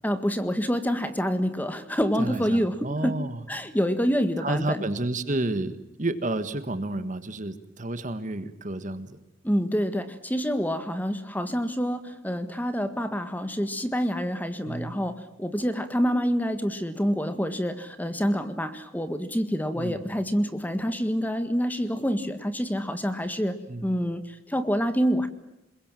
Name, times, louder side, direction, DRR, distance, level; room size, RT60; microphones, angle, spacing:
voice 1, 0.0-4.8 9.4-25.3, equal, 10° left, 9 dB, 1.7 m, -27 dB
voice 2, 2.2-3.4 4.4-9.2 14.6-14.9 19.7-20.1 23.7-23.9, right 2 dB, 40° right, 11 dB, 1.6 m, -31 dB
28.0 x 22.0 x 7.6 m, 0.91 s
head